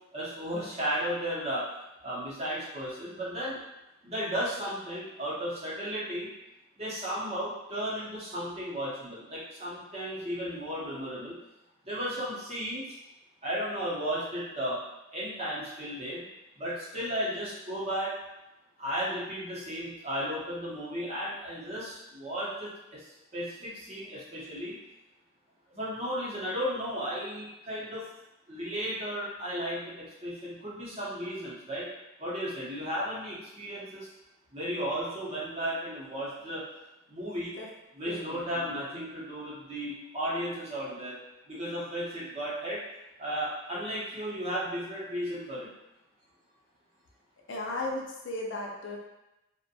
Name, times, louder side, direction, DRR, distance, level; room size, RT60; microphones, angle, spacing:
voice 1, 0.1-1.6 2.0-3.6 4.0-6.3 6.8-11.4 11.9-12.9 13.4-14.8 15.1-16.2 16.6-18.1 18.8-24.8 25.7-28.1 28.5-31.9 32.2-34.1 34.5-36.6 37.1-37.6 37.9-41.2 41.5-42.8 43.2-45.7, equal, 30° right, -7 dB, 0.7 m, -34 dB
voice 2, 38.0-38.8 47.5-49.0, left 2 dB, 60° left, -2 dB, 0.5 m, -36 dB
2.5 x 2.1 x 2.6 m, 0.94 s
head